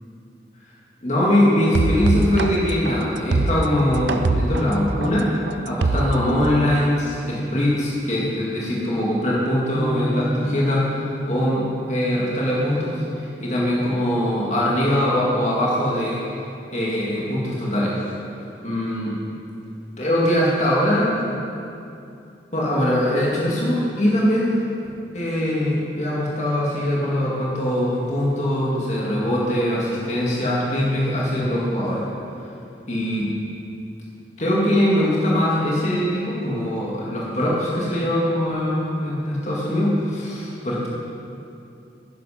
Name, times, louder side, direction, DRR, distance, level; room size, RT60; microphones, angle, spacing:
voice 1, 1.0-5.3 5.6-16.3 16.7-18.0 18.6-19.2 20.0-21.2 22.5-24.5 25.1-32.1 32.9-33.3 34.4-40.9, left 1 dB, 40° left, -5 dB, 2.0 m, -22 dB
sound 1, 1.7-6.7, right 3 dB, 80° right, 0.6 m, -23 dB
sound 2, 9.8-15.8, equal, 15° right, 0.7 m, -33 dB
11.5 x 10.5 x 5.0 m, 2.7 s
head